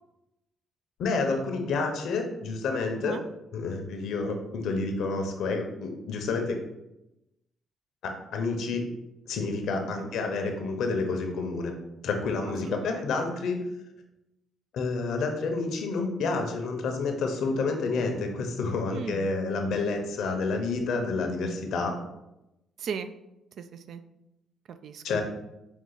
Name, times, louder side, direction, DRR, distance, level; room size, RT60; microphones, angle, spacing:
voice 1, 1.0-3.2 3.5-6.6 8.0-8.8 9.3-11.7 12.0-13.6 14.7-21.9 25.0-25.2, left 3 dB, 75° left, 4 dB, 0.8 m, -29 dB
voice 2, 18.9-19.3 22.8-23.1 23.6-24.0 24.7-25.2, right 6 dB, 65° right, 10 dB, 0.3 m, -37 dB
5.3 x 2.4 x 3.9 m, 0.91 s
cardioid pair, 90°, 0 cm